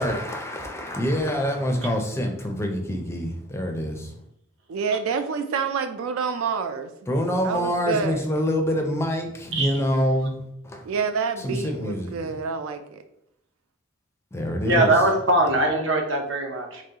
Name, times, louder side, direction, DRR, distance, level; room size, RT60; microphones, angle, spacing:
voice 1, 0.0-4.1 7.1-10.3 10.6-10.8 11.4-12.2 14.3-15.0, equal, 15° left, 0.4 m, -26 dB
voice 2, 4.7-6.9 7.4-8.2 10.9-13.0, right 5 dB, 85° right, 0.3 m, -27 dB
voice 3, 14.6-16.8, right 2 dB, 65° right, 0.7 m, -21 dB
3.7 x 3.0 x 2.8 m
head